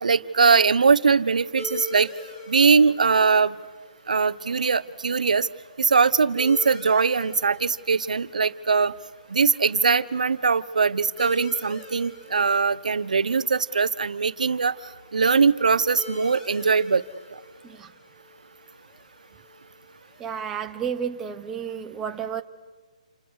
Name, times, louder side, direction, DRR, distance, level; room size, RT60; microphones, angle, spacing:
voice 1, 0.0-2.1 2.5-3.6 4.1-5.5 5.8-8.9 9.3-14.7 15.1-17.0, right 5 dB, 90° right, 1.0 m, -21 dB
sound 1, 1.6-20.7, left 2 dB, 15° left, 2.7 m, -44 dB
voice 2, 20.2-22.4, right 7 dB, 10° right, 0.8 m, -31 dB
29.0 x 29.0 x 6.4 m
hypercardioid pair, 165°, 4 cm